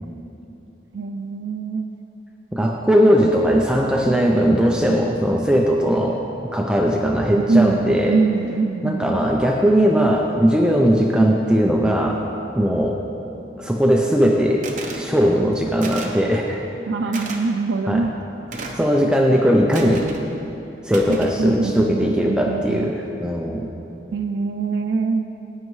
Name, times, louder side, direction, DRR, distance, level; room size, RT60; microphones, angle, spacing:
voice 1, 0.9-1.9 7.3-9.3 16.9-18.1 21.1-22.9 24.1-25.2, right 4 dB, 90° right, 6 dB, 0.4 m, -23 dB
voice 2, 2.5-6.2 6.5-8.2 8.8-12.2 12.5-13.0 13.6-16.6 17.9-18.1 18.8-20.1 20.8-23.7, equal, 5° right, 0 dB, 0.5 m, -19 dB
sound 1, 14.6-15.0 15.8-16.2 17.1-17.4 18.5-18.9 19.7-20.2 20.9-21.4, right 3 dB, 45° right, 0.9 m, -33 dB
15.0 x 9.1 x 3.2 m, 2.7 s
head